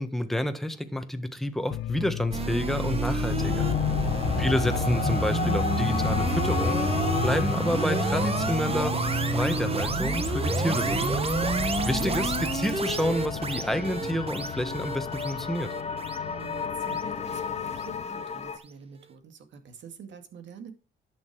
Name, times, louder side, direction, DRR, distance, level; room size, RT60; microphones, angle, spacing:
voice 1, 0.0-3.7 4.4-6.8 7.2-9.0 9.3-11.1 11.8-15.7, equal, ahead, 1.5 m, -29 dB
sound 1, 1.7-18.0, left 15 dB, 80° left, 0.5 m, -34 dB
sound 2, 2.3-17.5, right 4 dB, 30° right, 1.3 m, -29 dB
sound 3, 3.4-18.6, left 5 dB, 35° left, 1.4 m, -34 dB
voice 2, 4.1-4.5 16.2-20.7, right 7 dB, 65° right, 2.3 m, -46 dB
11.0 x 6.7 x 4.8 m
cardioid pair, 90°, 20 cm